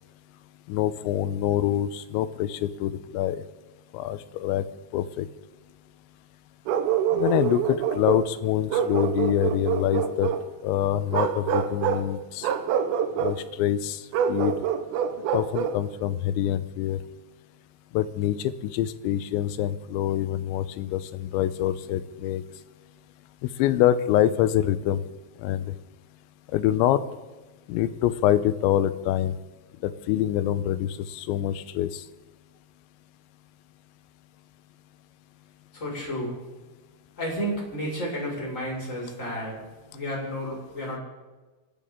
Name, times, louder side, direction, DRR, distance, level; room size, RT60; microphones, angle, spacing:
voice 1, 0.7-3.4 3.9-4.6 4.9-5.3 7.1-10.3 10.6-12.5 13.2-14.0 14.3-14.5 15.3-17.0 17.9-22.4 23.4-25.0 25.4-25.7 26.5-27.0 27.7-29.4 29.8-32.0, left 12 dB, 80° left, 13 dB, 2.9 m, -25 dB
Bark, 6.7-8.3 8.7-10.4 11.1-12.1 12.4-13.4 14.1-15.8, right 8 dB, 90° right, 3.7 m, -26 dB
voice 2, 35.7-36.4 37.2-39.6 39.9-41.0, equal, 15° left, -3 dB, 5.5 m, -31 dB
29.0 x 12.5 x 3.8 m, 1.2 s
omnidirectional pair, 5.6 m